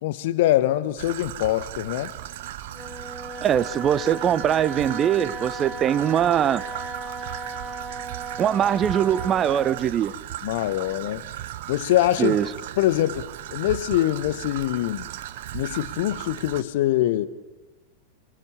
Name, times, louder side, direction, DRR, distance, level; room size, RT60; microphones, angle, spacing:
voice 1, 0.0-2.1 10.4-11.2 11.7-12.4 12.8-15.1 15.5-17.3, left 14 dB, 50° left, 14 dB, 1.2 m, -23 dB
Traffic noise roadway noise / Trickle dribble, 1.0-16.6, right 12 dB, 55° right, 1.1 m, -37 dB
Wind instrument woodwind instrument, 2.7-9.9, right 2 dB, 10° left, 3.1 m, -36 dB
voice 2, 3.4-6.6 8.4-10.1 12.2-12.5, right 9 dB, 25° right, 17 dB, 0.9 m, -22 dB
27.5 x 22.0 x 7.2 m, 1.3 s
figure-of-eight pair, 90°, 0 cm